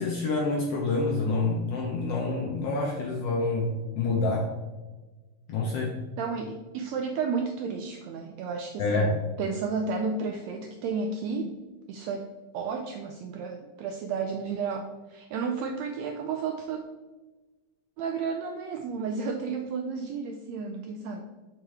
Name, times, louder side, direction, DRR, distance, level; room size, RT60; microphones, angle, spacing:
voice 1, 0.0-4.5 5.5-6.0 8.8-9.1, left 3 dB, 75° left, -1 dB, 1.4 m, -27 dB
voice 2, 6.2-11.6 11.9-16.8 18.0-21.2, right 5 dB, 85° right, 4 dB, 1.5 m, -32 dB
7.6 x 4.5 x 3.4 m, 1.2 s
omnidirectional pair, 3.6 m